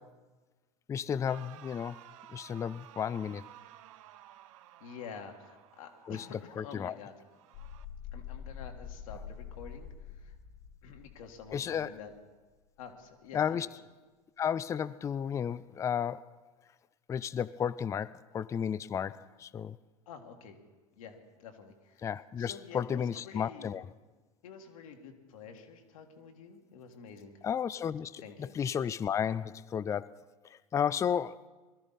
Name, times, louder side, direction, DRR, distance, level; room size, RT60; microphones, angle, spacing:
voice 1, 0.9-2.0 2.3-3.5 6.1-7.0 11.5-11.9 13.3-13.7 14.4-16.3 17.1-19.8 22.0-23.8 27.4-30.2 30.4-31.5, left 8 dB, 15° left, 18 dB, 0.3 m, -33 dB
sound 1, 1.3-6.4 7.2-7.8, right 13 dB, 60° right, 0.6 m, -54 dB
voice 2, 4.8-7.1 8.1-10.4 10.8-12.1 12.8-13.7 20.1-20.6 20.9-22.1 22.4-23.7 24.4-27.3 28.2-28.5, left 6 dB, 65° left, 3 dB, 1.8 m, -48 dB
sound 2, 7.5-12.1, left 7 dB, 50° left, 1.2 m, -46 dB
21.0 x 13.0 x 4.1 m, 1.3 s
figure-of-eight pair, 85°, 19 cm